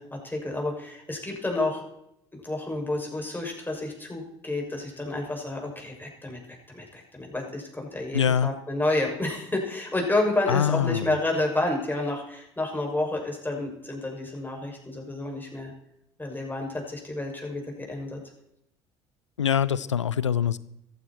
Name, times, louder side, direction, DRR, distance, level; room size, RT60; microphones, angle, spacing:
voice 1, 0.0-1.8 2.4-15.7 16.2-17.6 17.9-18.2, left 2 dB, 15° left, 0 dB, 6.3 m, -30 dB
voice 2, 8.1-8.5 10.5-11.1 19.4-20.6, left 8 dB, 90° left, 18 dB, 0.5 m, -24 dB
15.5 x 14.5 x 4.4 m, 0.78 s
figure-of-eight pair, 55°, 15 cm